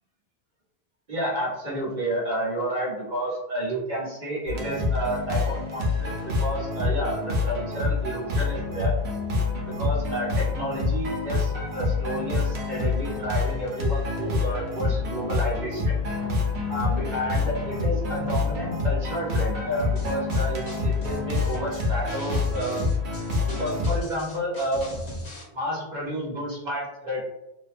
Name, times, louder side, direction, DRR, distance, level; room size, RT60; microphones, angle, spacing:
voice 1, 1.1-8.9 9.6-16.1 16.7-22.9 23.4-24.9 25.5-27.2, right 1 dB, 50° right, -6 dB, 1.1 m, -30 dB
sound 1, 4.5-24.0, left 3 dB, 80° right, 0.9 m, -27 dB
sound 2, 9.2-12.5 12.8-13.8 14.2-16.5 16.9-17.8 18.3-19.2 19.7-22.0 22.4-23.4 23.9-24.0, left 1 dB, 25° left, 0.6 m, -45 dB
sound 3, 20.0-25.4, left 1 dB, 85° left, 1.1 m, -39 dB
2.7 x 2.2 x 2.4 m, 0.93 s
omnidirectional pair, 1.1 m